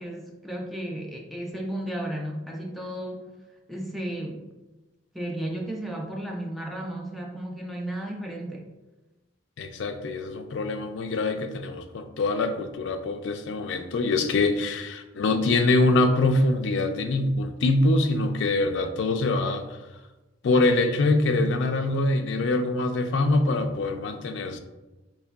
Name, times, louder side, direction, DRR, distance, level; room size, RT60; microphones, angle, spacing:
voice 1, 0.0-3.3 3.7-4.5 5.1-8.7, right 1 dB, ahead, -1 dB, 0.4 m, -34 dB
voice 2, 9.6-19.6 20.4-24.6, left 2 dB, 75° left, 7 dB, 0.4 m, -24 dB
3.6 x 3.1 x 2.3 m, 1.1 s
head